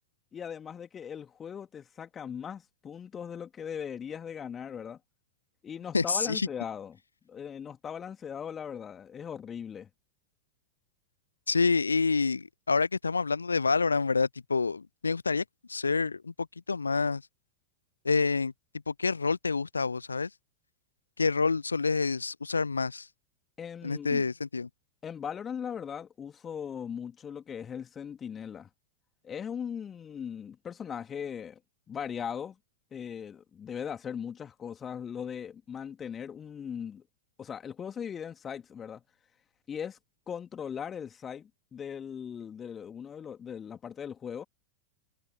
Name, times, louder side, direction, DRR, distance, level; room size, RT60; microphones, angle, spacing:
voice 1, 0.3-5.0 5.6-7.0 7.3-9.9 23.6-24.3 25.0-28.7 29.2-31.6 31.9-32.6 32.9-37.0 37.4-39.0 39.7-40.0 40.3-44.4, left 8 dB, 20° left, 2.9 m, -39 dB
voice 2, 5.9-6.5 11.5-17.2 18.0-18.5 18.9-20.3 21.2-23.1 23.8-24.7, left 4 dB, 75° left, 0.4 m, -28 dB
figure-of-eight pair, 90°, 0 cm